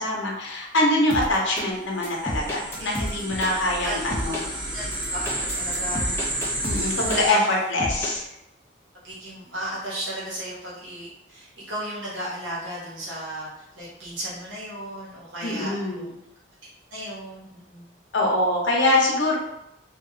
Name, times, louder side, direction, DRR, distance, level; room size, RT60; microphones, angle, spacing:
voice 1, 0.0-4.4 6.6-8.2 15.4-16.2 18.1-19.4, left 1 dB, 85° left, -1 dB, 0.7 m, -24 dB
sound 1, 1.1-1.7 2.0-3.5 4.1-4.4 4.9-7.5 7.8-8.1, left 1 dB, 15° left, 0.4 m, -31 dB
sound 2, 1.9-7.3, right 1 dB, 30° right, 1.0 m, -31 dB
voice 2, 2.8-3.2 3.8-4.0 4.7-6.3 6.6-7.4 9.0-13.5 13.7-16.1 16.9-17.9, equal, 85° right, -7 dB, 1.0 m, -35 dB
2.8 x 2.3 x 2.6 m, 0.84 s
head